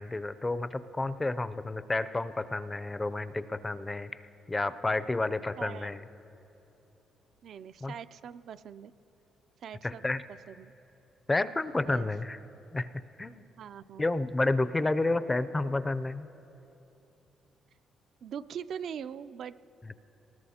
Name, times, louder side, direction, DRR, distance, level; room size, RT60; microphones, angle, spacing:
voice 1, 0.0-6.0 7.8-7.9 9.8-10.2 11.3-12.4 12.7-13.5 14.0-16.3 19.8-19.9, left 2 dB, 20° left, 14 dB, 0.4 m, -30 dB
voice 2, 5.6-5.9 7.4-8.9 9.6-10.7 11.8-12.1 13.6-14.1 18.2-19.6, right 8 dB, 65° right, 12 dB, 0.3 m, -42 dB
20.0 x 19.0 x 2.8 m, 3.0 s
cardioid pair, 90°, 0 cm